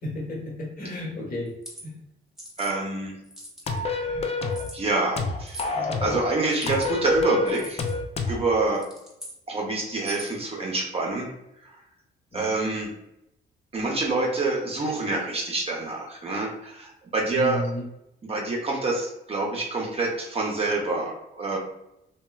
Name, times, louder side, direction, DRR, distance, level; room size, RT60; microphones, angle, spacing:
voice 1, 0.0-1.5 1.8-1.9 12.3-12.5 17.3-17.8, left 2 dB, 45° left, -4 dB, 1.2 m, -32 dB
sound 1, 1.4-1.8 2.4-2.7 3.2-3.8 4.5-4.8 5.5-5.7 6.5-6.9 7.5-7.9 8.7-9.4 9.9-10.4, right 1 dB, 5° right, 0.9 m, -42 dB
voice 2, 2.6-3.1 3.7-4.2 4.7-7.8 8.3-8.9 9.5-11.3 11.6-11.7 12.3-12.9 13.7-17.7 18.2-21.6, right 3 dB, 30° right, -2 dB, 0.6 m, -27 dB
sound 2, 3.7-4.7 5.2-6.3 6.7-8.4, left 3 dB, 30° left, 0.4 m, -28 dB
2.9 x 2.2 x 2.3 m, 0.82 s
cardioid pair, 90°, 20 cm